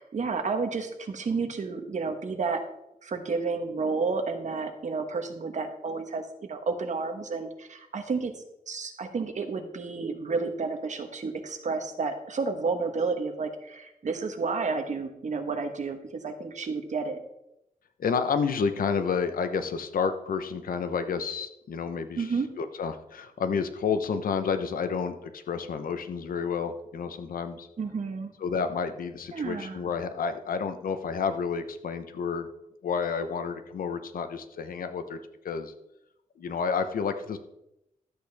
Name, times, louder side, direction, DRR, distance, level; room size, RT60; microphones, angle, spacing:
voice 1, 0.0-2.6 3.0-8.3 8.7-17.2 22.2-22.5 27.8-28.3 29.3-29.8, right 4 dB, 60° right, 7 dB, 1.3 m, -31 dB
voice 2, 18.0-22.3 22.6-27.7 28.4-32.5 32.8-35.2 35.4-35.7 36.4-37.4, left 6 dB, 85° left, 9 dB, 0.9 m, -30 dB
12.5 x 8.3 x 3.5 m, 0.85 s
wide cardioid pair, 105°, 14 cm